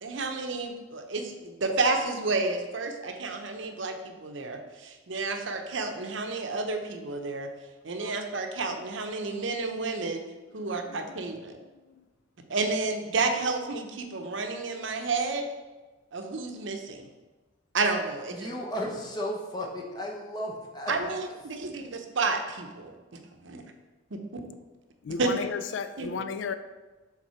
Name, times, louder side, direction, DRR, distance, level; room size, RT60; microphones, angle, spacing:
voice 1, 0.0-7.5 7.8-10.2 10.5-11.5 12.5-15.5 16.1-17.1 17.7-18.5 20.9-22.9 23.4-23.6 24.1-24.2 25.2-25.3 26.0-26.3, right 3 dB, 70° right, 5 dB, 0.7 m, -30 dB
voice 2, 10.8-11.2 11.7-12.0 25.0-26.5, left 5 dB, 65° left, 11 dB, 0.4 m, -34 dB
voice 3, 18.3-20.9, equal, 20° left, -1 dB, 0.9 m, -34 dB
7.3 x 3.8 x 4.4 m, 1.2 s
head